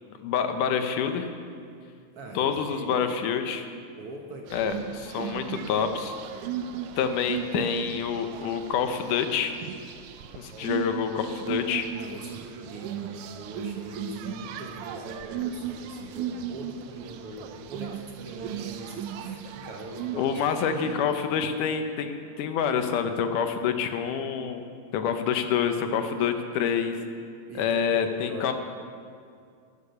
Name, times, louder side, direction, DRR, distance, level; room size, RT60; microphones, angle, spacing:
voice 1, 0.2-1.3 2.4-3.7 4.5-6.2 7.0-9.5 10.4-11.9 20.2-24.6 24.9-27.0 27.6-28.5, left 7 dB, 80° left, 7 dB, 2.4 m, -27 dB
voice 2, 2.1-3.0 4.0-5.0 10.5-10.8 11.9-21.1 27.5-28.5, right 1 dB, 60° right, 1 dB, 1.7 m, -41 dB
sound 1, 4.5-21.2, right 8 dB, 80° right, 2.2 m, -37 dB
13.0 x 12.0 x 7.0 m, 2.3 s
omnidirectional pair, 3.7 m